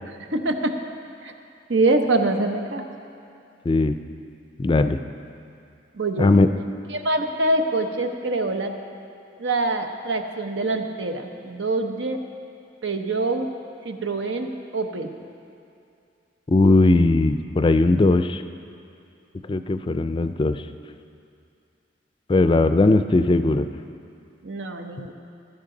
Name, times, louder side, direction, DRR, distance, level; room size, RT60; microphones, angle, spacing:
voice 1, 0.3-0.7 1.2-1.3 1.7-2.8 5.9-6.3 6.9-8.7 9.4-12.2 12.8-13.5 13.8-15.1 22.8-23.0 24.4-25.1, right 2 dB, 85° right, 4 dB, 1.0 m, -25 dB
voice 2, 3.7-4.0 4.6-5.0 6.2-6.5 16.5-18.4 19.5-20.6 22.3-23.7, left 2 dB, 30° left, 10 dB, 0.4 m, -18 dB
15.0 x 13.0 x 3.9 m, 2.5 s
head